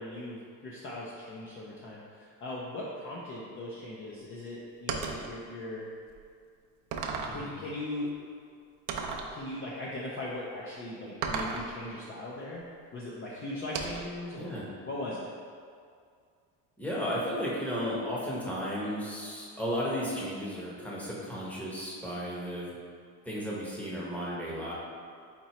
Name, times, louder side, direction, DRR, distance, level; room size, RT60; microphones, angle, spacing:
voice 1, 0.0-5.9 7.3-8.1 9.3-12.6 12.9-14.6 14.9-15.3, left 1 dB, 30° left, -4 dB, 0.5 m, -39 dB
sound 1, 4.9-5.3 6.1-6.2 6.9-7.4 8.9-9.3 11.2-11.7 13.7-14.2, right 5 dB, 45° right, 0.5 m, -34 dB
voice 2, 7.3-7.6 14.3-14.6 16.8-22.7 23.2-24.7, equal, 5° left, -6 dB, 0.8 m, -34 dB
4.4 x 3.8 x 2.9 m, 2.2 s
cardioid pair, 125°, 42 cm